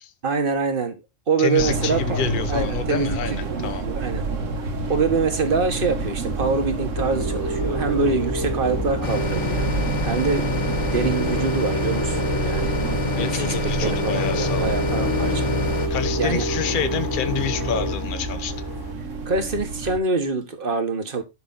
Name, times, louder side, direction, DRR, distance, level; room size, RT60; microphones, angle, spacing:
voice 1, 0.2-2.2 2.5-3.2 3.4-4.2 4.9-10.5 10.9-12.8 13.2-15.5 16.2-16.4 19.3-21.2, right 4 dB, 45° right, 1.8 m, -25 dB
voice 2, 1.4-3.8 13.2-14.8 15.9-18.6, left 7 dB, 45° left, 1.0 m, -28 dB
sound 1, 1.6-20.0, right 3 dB, 85° right, 1.7 m, -29 dB
sound 2, 7.0-18.9, left 1 dB, 20° left, 0.9 m, -28 dB
sound 3, 9.0-15.9, left 2 dB, 70° left, 3.4 m, -28 dB
11.5 x 6.1 x 4.1 m
omnidirectional pair, 1.3 m